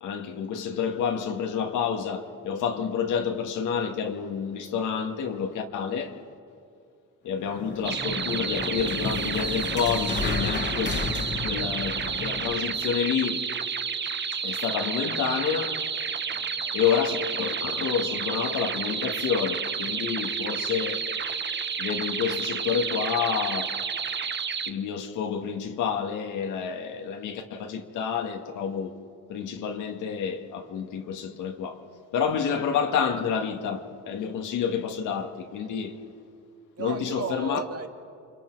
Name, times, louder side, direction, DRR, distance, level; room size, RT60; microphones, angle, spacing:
voice 1, 0.0-6.2 7.2-11.0 11.4-13.5 14.4-15.8 16.7-21.0 21.8-23.8 24.7-29.0 29.3-31.8 32.1-36.0 36.8-37.6, left 7 dB, 85° left, 1.9 m, -29 dB
sound 1, 7.3-12.8, left 4 dB, 35° left, 1.7 m, -33 dB
sound 2, 7.8-24.7, right 6 dB, 35° right, 1.1 m, -31 dB
voice 2, 16.3-16.8 36.8-37.9, right 5 dB, 55° right, 2.0 m, -35 dB
29.0 x 25.0 x 4.7 m
cardioid pair, 90°, 30 cm